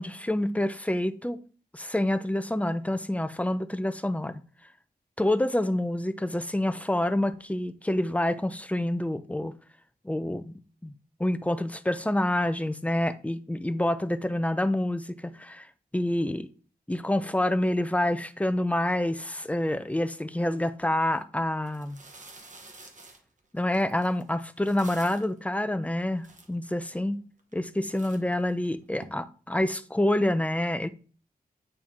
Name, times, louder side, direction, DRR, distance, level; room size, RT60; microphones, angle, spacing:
voice 1, 0.0-1.4 1.7-4.4 5.2-9.5 10.0-10.5 10.8-10.9 11.2-15.7 15.9-16.5 16.9-22.0 23.5-27.2 27.5-30.9, left 1 dB, 10° left, 0.5 m, -27 dB
sound 1, 21.0-21.2 21.6-25.4 25.9-26.0 26.2-26.9 27.4-27.6 27.9-29.1, right 3 dB, 50° right, 1.1 m, -49 dB
8.8 x 4.4 x 3.7 m
wide cardioid pair, 130°, 16 cm